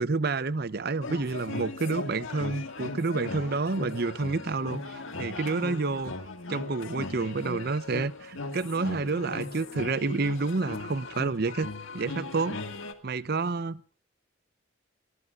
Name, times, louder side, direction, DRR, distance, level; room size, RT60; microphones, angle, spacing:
voice 1, 0.0-6.1 6.5-11.7 11.9-12.6 13.0-13.8, right 3 dB, 50° right, 0.7 m, -29 dB
sound 1, 1.0-12.9, left 3 dB, 80° left, 1.9 m, -38 dB
27.0 x 19.5 x 2.5 m
head